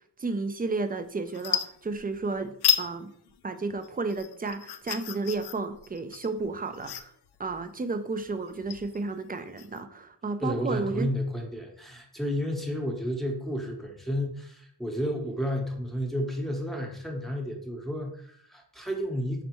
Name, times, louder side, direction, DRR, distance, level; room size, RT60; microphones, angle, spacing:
voice 1, 0.2-3.1 3.4-7.1 7.4-11.1, right 3 dB, 20° right, 9 dB, 0.4 m, -32 dB
sound 1, 0.8-1.0 1.3-2.3 2.6-2.9 3.3-9.8, left 9 dB, 70° left, 0.5 m, -32 dB
voice 2, 10.4-19.4, equal, ahead, 1 dB, 0.8 m, -31 dB
5.2 x 3.3 x 3.0 m, 0.65 s
wide cardioid pair, 90°, 42 cm